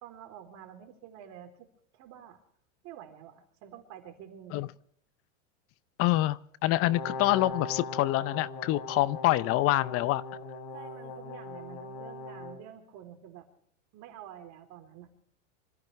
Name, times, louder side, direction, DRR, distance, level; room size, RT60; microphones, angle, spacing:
voice 1, 0.0-1.7 1.9-2.4 2.8-4.6 10.7-13.5 13.9-15.1, right 10 dB, 45° right, 6 dB, 3.7 m, -48 dB
voice 2, 6.0-10.2, left 17 dB, 35° left, 19 dB, 0.6 m, -26 dB
Brass instrument, 6.8-12.6, left 3 dB, 55° left, 3.2 m, -40 dB
26.0 x 14.5 x 3.3 m, 0.67 s
hypercardioid pair, 120°, 39 cm